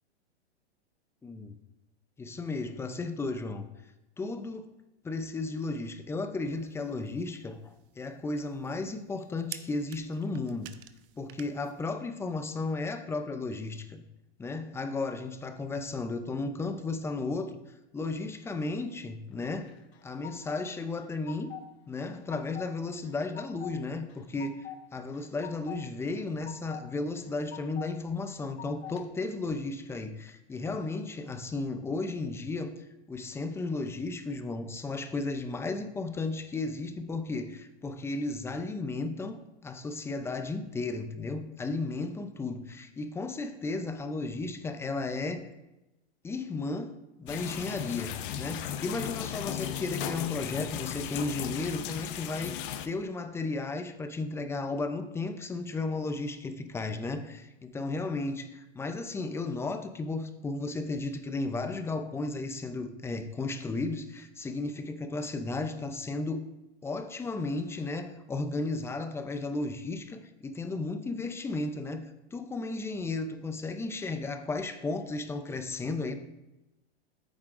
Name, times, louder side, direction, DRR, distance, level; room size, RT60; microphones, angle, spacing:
voice 1, 1.2-1.5 2.2-3.7 4.2-4.7 5.0-10.7 11.2-14.0 14.4-17.6 17.9-19.7 20.0-21.5 21.9-45.5 46.2-66.5 66.8-76.1, left 3 dB, 10° left, 8 dB, 0.5 m, -34 dB
sound 1, 6.5-11.9, right 13 dB, 55° right, 0.8 m, -50 dB
sound 2, 19.6-20.6 21.0-21.7 22.0-22.7 23.0-23.8 24.1-24.8 25.1-25.8 26.2-26.9 27.2-27.9 28.3-29.0, left 10 dB, 70° left, 1.1 m, -44 dB
sound 3, 47.3-52.9, left 10 dB, 50° left, 0.7 m, -36 dB
14.0 x 7.2 x 2.5 m, 0.96 s
hypercardioid pair, 125°, 33 cm